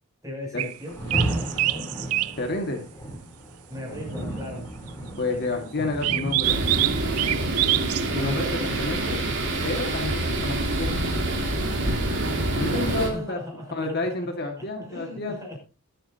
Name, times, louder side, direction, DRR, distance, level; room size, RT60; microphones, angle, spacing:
voice 1, 0.2-1.9 2.2-2.4 3.7-4.7 13.0-14.3 14.6-15.6, left 1 dB, 15° right, -2 dB, 7.2 m, -38 dB
sound 1, 0.6-0.7 1.1-2.3 6.0-8.0, right 16 dB, 85° right, 0.5 m, -25 dB
Rain, 0.8-9.9, right 1 dB, 15° left, 4.3 m, -35 dB
voice 2, 2.4-2.8 5.2-6.6 8.1-9.2 9.6-10.9 12.5-13.4 13.7-15.4, left 2 dB, 45° left, 3 dB, 1.9 m, -29 dB
sound 2, 6.4-13.1, right 1 dB, 55° right, 3.5 m, -26 dB
22.0 x 8.9 x 2.8 m, 0.33 s
head